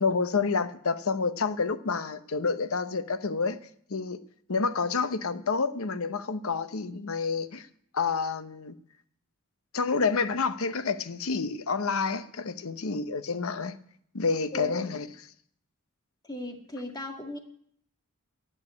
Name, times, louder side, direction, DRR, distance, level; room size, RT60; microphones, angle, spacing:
voice 1, 0.0-3.6 3.9-4.2 4.5-7.7 7.9-8.7 9.7-13.8 14.1-15.1, left 4 dB, 70° left, 0.8 m, -29 dB
voice 2, 14.5-14.8 16.2-17.4, left 1 dB, 20° left, 1.8 m, -36 dB
12.0 x 8.7 x 8.5 m
head